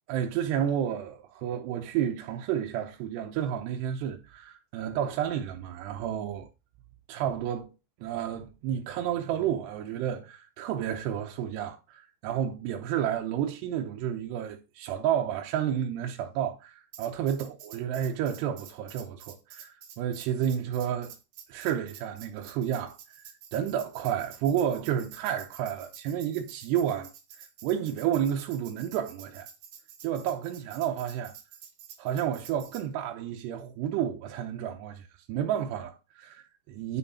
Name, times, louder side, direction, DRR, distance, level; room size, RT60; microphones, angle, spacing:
voice 1, 0.1-6.5 7.1-7.7 8.0-21.1 21.5-23.0 23.5-27.1 27.6-29.5 30.0-31.4 32.0-37.0, right 10 dB, 85° right, 3.0 m, -31 dB
Tambourine, 16.9-32.9, right 9 dB, 65° right, 2.7 m, -49 dB
9.3 x 5.8 x 4.2 m
omnidirectional pair, 4.8 m